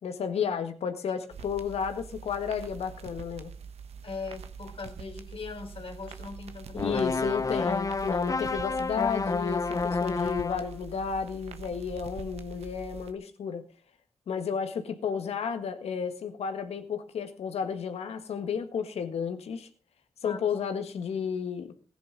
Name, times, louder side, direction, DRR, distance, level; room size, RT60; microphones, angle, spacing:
voice 1, 0.0-3.5 6.7-13.6 14.3-19.7 20.2-21.7, left 7 dB, 85° left, 8 dB, 1.7 m, -32 dB
sound 1, 1.3-13.1, right 6 dB, 90° right, 1.1 m, -44 dB
voice 2, 4.0-7.0 20.2-20.4, left 4 dB, 65° left, 4 dB, 3.5 m, -40 dB
sound 2, 6.7-10.7, left 4 dB, 35° left, 0.6 m, -29 dB
16.0 x 10.5 x 5.2 m, 0.38 s
cardioid pair, 45°, 10 cm